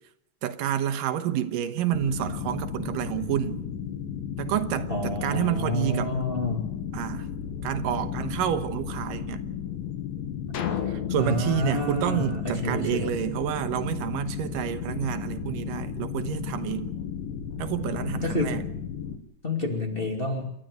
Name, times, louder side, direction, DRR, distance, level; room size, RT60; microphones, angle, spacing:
voice 1, 0.4-3.6 4.4-6.1 6.9-7.3 7.6-9.4 10.9-16.9 17.6-18.6, right 10 dB, 90° right, 2.7 m, -29 dB
sound 1, 1.9-19.2, left 8 dB, 80° left, 3.3 m, -34 dB
voice 2, 4.9-6.7 11.2-13.2 18.2-18.6 19.4-20.5, left 2 dB, 20° left, 2.4 m, -29 dB
sound 2, 10.5-13.0, left 9 dB, 60° left, 2.6 m, -33 dB
28.0 x 12.5 x 7.9 m
omnidirectional pair, 3.8 m